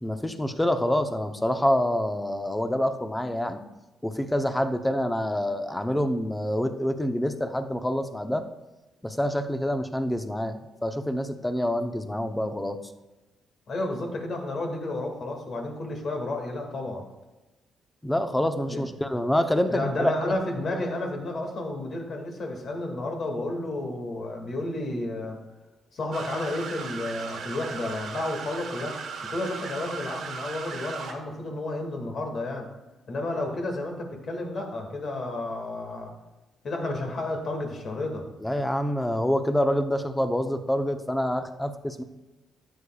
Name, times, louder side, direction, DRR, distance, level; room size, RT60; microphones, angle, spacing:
voice 1, 0.0-3.6 4.0-8.4 9.0-12.8 18.0-20.3 38.4-42.0, equal, 10° left, 8 dB, 0.8 m, -26 dB
voice 2, 13.7-17.0 18.7-18.8 19.7-25.4 25.9-29.0 29.3-32.7 33.1-36.1 36.6-38.3, left 2 dB, 55° left, 2 dB, 2.1 m, -31 dB
sound 1, 26.1-31.1, right 5 dB, 70° right, 1.4 m, -37 dB
12.5 x 8.4 x 2.4 m, 1.1 s
cardioid pair, 80°, 0 cm